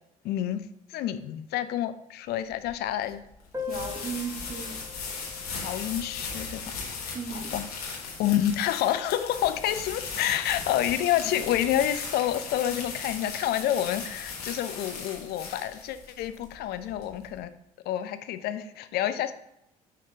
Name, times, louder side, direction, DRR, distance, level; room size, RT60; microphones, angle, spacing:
voice 1, 0.2-0.6 0.9-3.2 5.6-7.1 7.3-17.5 17.9-19.3, left 11 dB, 60° left, 11 dB, 0.5 m, -29 dB
sound 1, 2.5-17.4, left 4 dB, 85° left, 1.2 m, -38 dB
Piano, 3.5-8.9 9.2-9.3 9.5-9.6 10.0-10.1 10.8-11.0, left 7 dB, 15° right, 1.4 m, -43 dB
voice 2, 3.7-4.8 7.1-7.6, right 6 dB, 45° right, 3 dB, 1.5 m, -36 dB
7.5 x 5.0 x 2.8 m, 0.81 s
hypercardioid pair, 50°, 19 cm